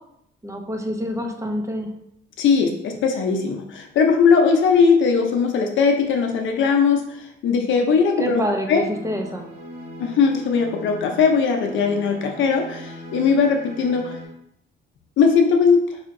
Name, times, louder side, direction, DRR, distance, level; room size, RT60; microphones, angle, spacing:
voice 1, 0.4-1.9 8.2-9.4, equal, 15° right, 2 dB, 0.5 m, -27 dB
voice 2, 2.4-7.0 7.4-8.4 8.7-8.8 10.0-14.2 15.2-15.8, left 5 dB, 75° left, 3 dB, 0.6 m, -19 dB
sound 1, 8.8-14.3, equal, 40° right, 1.1 m, -38 dB
4.2 x 2.6 x 2.6 m, 0.77 s
cardioid pair, 90°, 20 cm